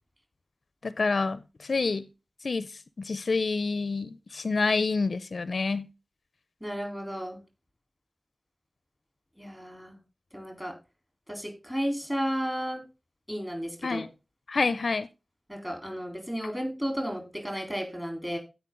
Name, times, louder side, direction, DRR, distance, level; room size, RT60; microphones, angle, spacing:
voice 1, 0.8-2.1 2.4-2.7 3.0-5.9 13.8-14.1 14.5-15.1, left 4 dB, 70° left, 0.5 m, -28 dB
voice 2, 6.6-7.4 9.4-10.0 10.3-10.7 11.3-12.8 13.3-14.1 15.5-18.4, equal, 10° right, 3.6 m, -33 dB
15.5 x 5.3 x 3.7 m
wide cardioid pair, 90°, 0 cm